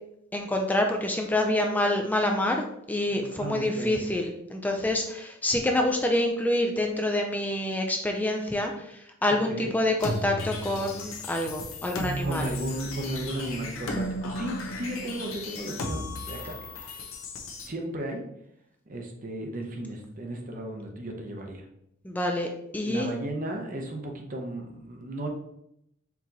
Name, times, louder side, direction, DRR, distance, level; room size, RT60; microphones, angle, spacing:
voice 1, 0.3-12.5 22.0-22.5 22.7-23.1, left 1 dB, 10° left, 2 dB, 0.4 m, -27 dB
voice 2, 3.1-4.0 9.5-9.8 12.2-16.7 17.0-17.1 17.7-18.3 18.9-21.6 22.8-25.3, right 1 dB, 40° right, 2 dB, 0.8 m, -35 dB
sound 1, 10.0-17.7, left 1 dB, 85° left, 0.7 m, -34 dB
4.6 x 2.9 x 3.8 m, 0.77 s
head